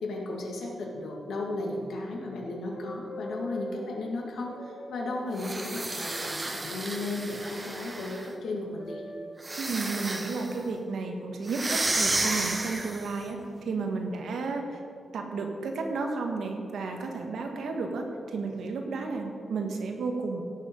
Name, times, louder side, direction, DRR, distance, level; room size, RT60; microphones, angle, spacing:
voice 1, 0.0-9.0, left 2 dB, 75° left, 0 dB, 2.0 m, -35 dB
sound 1, 2.7-3.8 4.3-6.1 7.6-8.2 8.8-9.3 10.2-10.8 11.7-12.0, left 1 dB, 55° left, 2.0 m, -44 dB
sound 2, 5.3-8.3 9.4-10.6 11.5-13.2, right 2 dB, 20° right, 0.8 m, -32 dB
voice 2, 9.6-14.8 15.1-20.4, right 4 dB, 75° right, 3 dB, 1.6 m, -32 dB
16.5 x 6.8 x 5.3 m, 2.4 s
wide cardioid pair, 170°, 0 cm